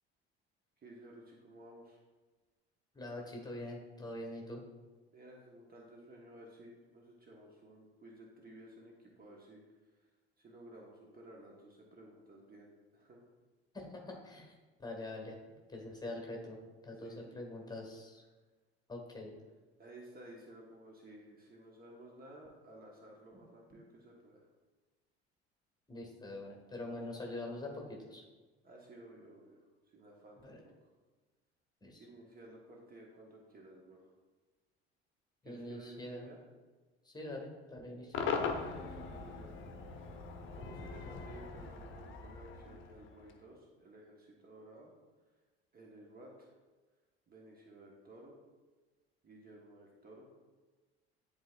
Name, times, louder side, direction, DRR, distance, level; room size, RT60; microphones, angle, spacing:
voice 1, 0.8-2.0 5.1-9.6 10.4-13.2 17.0-17.4 19.8-24.5 28.6-29.6 29.9-30.9 32.0-34.1 35.4-36.4 38.7-39.7 40.5-44.9 45.7-46.5 47.3-48.4 49.2-50.3, right 1 dB, 30° right, -1 dB, 1.3 m, -55 dB
voice 2, 2.9-4.6 13.7-14.5 14.8-15.4 15.7-16.6 16.8-18.2 18.9-19.3 25.9-28.2 30.4-30.6 31.8-32.0 35.4-36.3 37.0-38.3, left 1 dB, 10° left, 1 dB, 1.7 m, -44 dB
Cheering / Crowd / Fireworks, 38.1-43.4, left 5 dB, 40° left, 0.9 m, -40 dB
11.0 x 4.2 x 2.5 m, 1.3 s
figure-of-eight pair, 60°, 32 cm